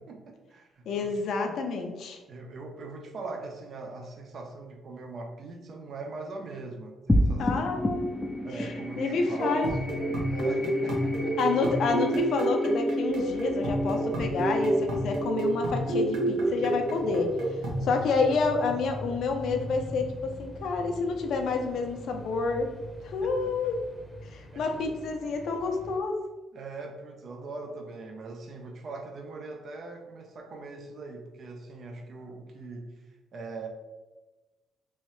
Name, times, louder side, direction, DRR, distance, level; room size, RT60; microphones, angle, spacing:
voice 1, 0.0-1.7 2.3-7.8 8.4-11.4 17.7-18.0 23.2-23.8 24.5-24.9 26.5-33.0 33.3-33.7, right 3 dB, 55° right, 2 dB, 0.5 m, -41 dB
voice 2, 0.9-2.2 7.4-8.2 8.6-9.7 11.4-17.3 17.8-22.7 23.0-23.8 24.3-26.2, left 4 dB, 75° left, 4 dB, 0.5 m, -29 dB
sound 1, 7.1-17.7, equal, 15° left, 0.3 m, -32 dB
sound 2, 9.4-17.9, right 1 dB, 85° right, 0.9 m, -29 dB
sound 3, 13.1-26.0, equal, 10° right, 0.8 m, -44 dB
3.1 x 2.7 x 3.1 m, 1.2 s
cardioid pair, 90°, 0 cm